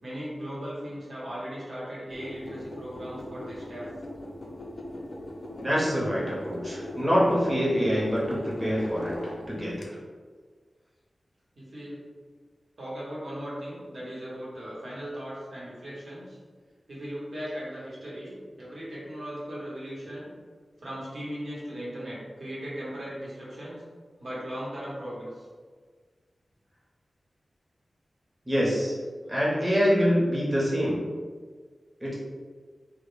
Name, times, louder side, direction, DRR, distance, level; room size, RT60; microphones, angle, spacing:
voice 1, 0.0-3.9 11.5-12.0 12.8-16.4 16.9-20.3 20.8-23.8 24.2-25.5 29.2-29.3, equal, 65° right, -7 dB, 0.9 m, -38 dB
sound 1, 2.1-9.8, left 1 dB, 65° left, 0.4 m, -39 dB
voice 2, 5.6-9.1 9.5-9.9 28.5-28.9 29.3-31.0 32.0-32.1, equal, 15° right, -7 dB, 0.6 m, -25 dB
2.1 x 2.0 x 3.0 m, 1.5 s
wide cardioid pair, 105°, 0 cm